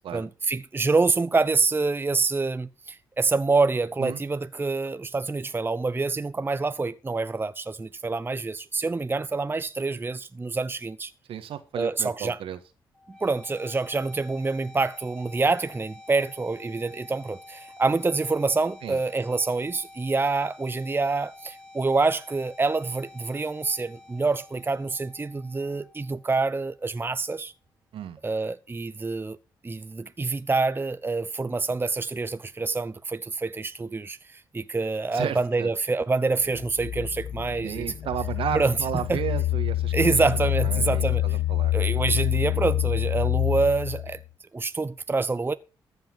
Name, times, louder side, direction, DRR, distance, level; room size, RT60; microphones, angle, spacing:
voice 1, 0.1-11.1 11.8-12.4 13.1-27.5 28.2-29.4 29.6-37.9 38.5-38.7 39.1-39.2 39.9-41.4 41.7-44.2 44.5-45.5, right 3 dB, 25° right, 0.7 m, -26 dB
voice 2, 11.3-12.6 18.8-19.0 27.9-28.2 35.1-35.7 37.6-40.2 40.6-41.7 42.0-42.1, right 9 dB, 70° right, 1.6 m, -33 dB
sound 1, 12.9-26.9, left 2 dB, 10° left, 2.7 m, -49 dB
sound 2, 36.4-44.2, left 14 dB, 70° left, 0.6 m, -27 dB
14.5 x 5.6 x 7.4 m
supercardioid pair, 50°, 9 cm